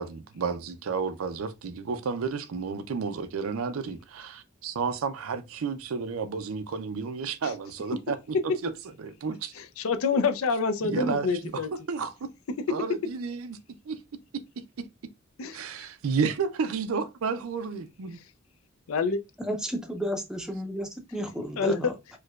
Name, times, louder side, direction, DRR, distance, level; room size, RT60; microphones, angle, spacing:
voice 1, 0.0-8.7 9.0-9.5 10.8-11.3 11.5-12.3 12.7-13.6 13.9-14.0 15.5-18.2, right 5 dB, 90° right, 0.5 m, -31 dB
voice 2, 9.6-11.7 15.4-15.6 18.9-19.2 21.6-21.9, left 4 dB, 90° left, 0.5 m, -27 dB
voice 3, 19.4-22.0, equal, 5° right, 0.5 m, -32 dB
4.5 x 2.2 x 2.3 m
head